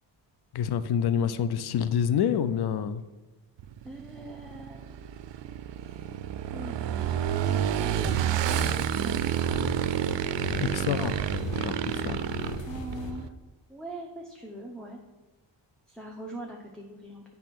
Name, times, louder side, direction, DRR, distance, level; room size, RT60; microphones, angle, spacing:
voice 1, 0.5-3.0 10.6-11.2 11.5-12.3, left 8 dB, 60° left, 13 dB, 0.6 m, -27 dB
Motorcycle / Engine, 3.6-13.3, right 10 dB, 70° right, 0.5 m, -29 dB
voice 2, 3.8-5.0 5.8-6.1 6.5-9.7 12.7-13.3 13.7-15.0 15.9-17.2, right 1 dB, ahead, -2 dB, 0.8 m, -42 dB
sound 1, 7.8-13.1, left 3 dB, 75° left, 0.9 m, -38 dB
8.3 x 3.6 x 6.1 m, 1.2 s
cardioid pair, 95°, 45 cm